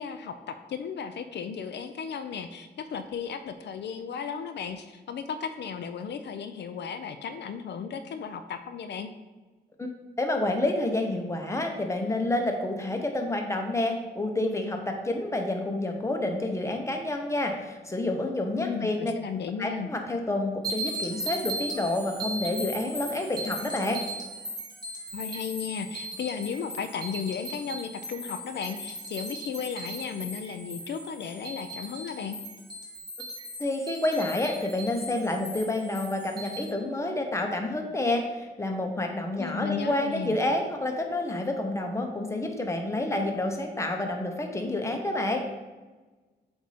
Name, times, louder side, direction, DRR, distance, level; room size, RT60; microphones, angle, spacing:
voice 1, 0.0-9.1 18.6-19.9 25.1-32.4 39.4-40.4, left 6 dB, 70° left, 8 dB, 0.4 m, -35 dB
voice 2, 10.2-19.1 19.6-24.0 33.6-45.5, left 2 dB, 15° left, 3 dB, 0.8 m, -29 dB
sound 1, 20.6-36.6, right 1 dB, 20° right, 1.4 m, -38 dB
7.8 x 2.7 x 4.9 m, 1.3 s
cardioid pair, 100°, 18 cm